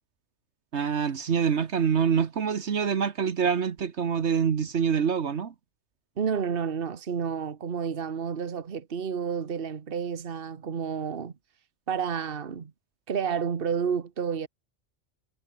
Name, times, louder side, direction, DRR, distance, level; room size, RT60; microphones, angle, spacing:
voice 1, 0.7-5.5, right 7 dB, 70° right, 1.5 m, -25 dB
voice 2, 6.2-11.3 11.9-12.7 13.1-14.5, right 6 dB, 50° right, 1.4 m, -30 dB
omnidirectional pair, 1.2 m